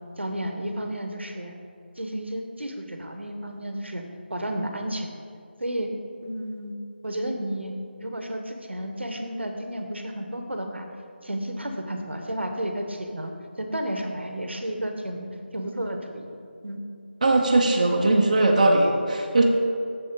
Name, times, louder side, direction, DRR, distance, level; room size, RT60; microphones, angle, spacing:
voice 1, 0.2-1.6 2.0-4.0 4.3-5.1 5.6-5.9 6.2-6.7 7.0-7.7 8.0-10.9 11.2-15.3 15.5-16.3 16.6-16.8, right 1 dB, 80° right, 4 dB, 1.0 m, -32 dB
voice 2, 17.2-19.4, right 2 dB, 40° right, 0 dB, 0.7 m, -20 dB
7.9 x 6.9 x 3.7 m, 2.5 s
figure-of-eight pair, 165°, 6 cm